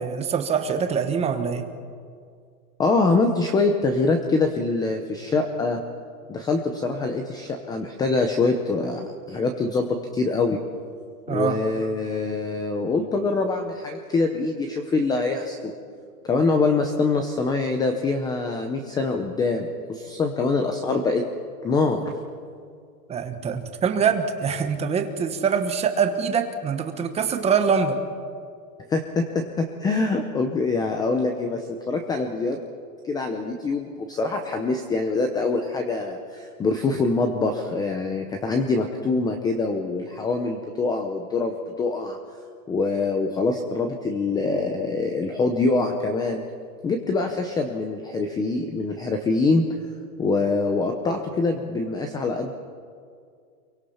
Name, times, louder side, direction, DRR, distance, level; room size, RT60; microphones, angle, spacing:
voice 1, 0.0-1.6 11.3-11.6 23.1-28.0, right 6 dB, 15° right, 7 dB, 1.2 m, -24 dB
voice 2, 2.8-5.8 6.3-9.9 10.1-10.6 11.3-15.7 16.2-21.2 21.6-22.1 28.9-32.6 33.0-42.2 42.7-46.4 46.8-49.6 50.2-52.5, left 3 dB, 10° left, 5 dB, 0.7 m, -24 dB
28.0 x 23.5 x 5.8 m, 2.2 s
supercardioid pair, 160°, 49 cm